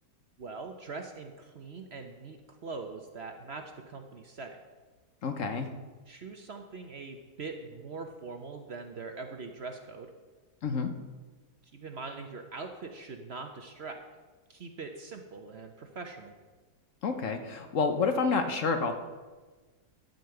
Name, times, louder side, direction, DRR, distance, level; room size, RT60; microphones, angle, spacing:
voice 1, 0.4-4.6 6.1-10.1 11.7-14.0 14.5-16.3, right 4 dB, 50° right, 5 dB, 0.9 m, -42 dB
voice 2, 5.2-5.7 10.6-10.9 17.0-18.9, left 4 dB, 60° left, 7 dB, 1.1 m, -29 dB
12.0 x 5.2 x 7.7 m, 1.3 s
omnidirectional pair, 1.7 m